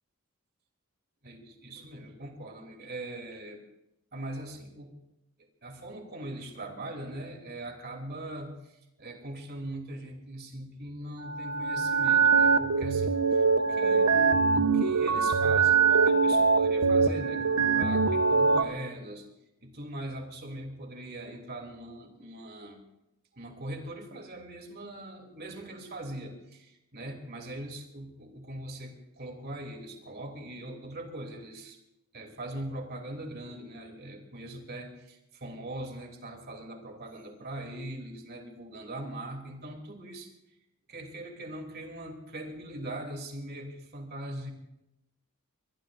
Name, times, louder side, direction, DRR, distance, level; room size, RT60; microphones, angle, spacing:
voice 1, 1.2-3.6 4.1-4.9 5.4-19.3 19.6-22.8 23.3-31.8 32.1-40.3 40.9-44.5, right 1 dB, 50° right, 2 dB, 3.0 m, -41 dB
sound 1, 11.2-18.6, right 5 dB, 80° right, 0.9 m, -23 dB
23.0 x 21.5 x 2.6 m, 0.88 s
head